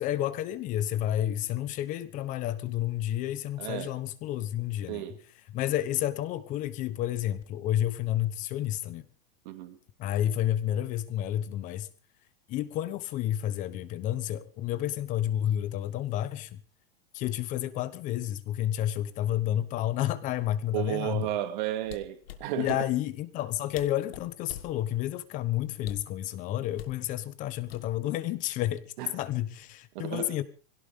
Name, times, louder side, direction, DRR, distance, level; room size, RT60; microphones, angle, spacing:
voice 1, 0.0-5.0 5.5-9.0 10.0-11.9 12.5-16.6 17.1-21.3 22.6-28.8 29.1-30.4, left 12 dB, 25° left, 1.0 m, -30 dB
voice 2, 3.6-4.0 4.9-5.2 9.4-9.8 20.7-22.8 29.0-29.1 29.9-30.4, right 14 dB, 50° right, 2.6 m, -33 dB
sound 1, 21.8-22.8 23.5-23.6 23.7-24.8 25.8-26.2 26.8-27.0 27.7-28.2 28.5-28.8, left 11 dB, 75° left, 1.8 m, -44 dB
21.5 x 17.0 x 3.7 m
supercardioid pair, 170°, 30 cm